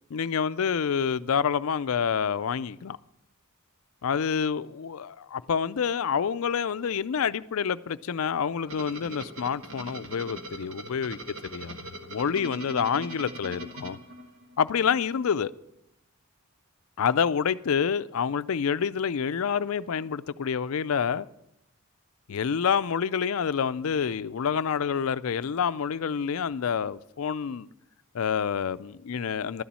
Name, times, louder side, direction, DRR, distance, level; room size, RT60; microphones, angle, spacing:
voice 1, 0.1-3.0 4.0-11.2 11.5-14.0 14.6-15.5 17.0-21.3 22.3-27.7 28.1-29.6, left 7 dB, 70° left, 0.4 m, -28 dB
sound 1, 8.7-14.7, right 1 dB, 60° right, 1.4 m, -41 dB
12.5 x 7.1 x 7.5 m
head